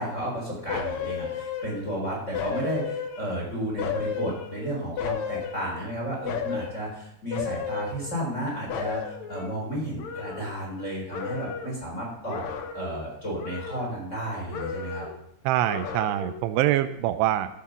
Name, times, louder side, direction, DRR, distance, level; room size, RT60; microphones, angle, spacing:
voice 1, 0.0-9.0 9.3-12.5 12.7-15.0, right 1 dB, 15° left, -4 dB, 4.1 m, -32 dB
sound 1, 0.7-2.0 2.3-3.4 3.8-5.9 6.3-6.8 7.3-8.4 8.7-10.9 11.1-11.8 12.3-13.1 13.4-14.2 14.5-15.2 15.7-16.5 16.9-17.0, left 7 dB, 70° left, 1.7 m, -34 dB
voice 2, 15.5-17.5, right 13 dB, 85° right, 10 dB, 2.8 m, -24 dB
14.0 x 7.2 x 5.9 m, 0.76 s
omnidirectional pair, 4.8 m